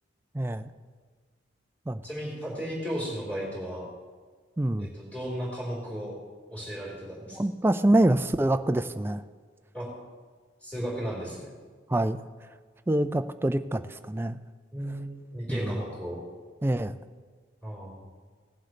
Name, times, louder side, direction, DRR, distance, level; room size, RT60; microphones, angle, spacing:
voice 1, 0.3-0.7 1.9-2.0 4.6-4.9 7.3-9.2 11.9-12.2 12.9-14.4 15.5-15.8 16.6-17.0, right 1 dB, 10° right, 10 dB, 0.3 m, -25 dB
voice 2, 2.0-3.9 4.8-6.2 6.5-7.4 9.7-9.9 10.6-11.5 14.7-16.2 17.6-18.0, equal, 5° left, -8 dB, 3.8 m, -35 dB
18.0 x 7.8 x 3.3 m, 1.5 s
head